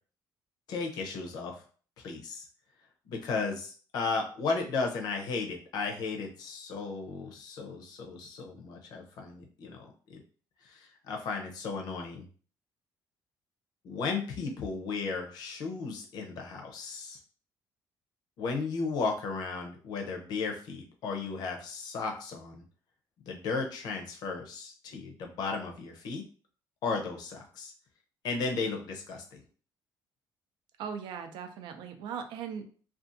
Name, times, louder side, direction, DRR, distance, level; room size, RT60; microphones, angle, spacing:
voice 1, 0.7-1.5 2.0-2.4 3.1-10.2 10.7-12.2 13.8-17.2 18.4-22.6 23.3-26.2 26.8-27.7 28.2-29.4, left 4 dB, 60° left, 2 dB, 0.6 m, -35 dB
voice 2, 30.8-32.7, right 7 dB, 80° right, 6 dB, 0.4 m, -39 dB
2.5 x 2.3 x 2.6 m, 0.42 s
cardioid pair, 180°, 8 cm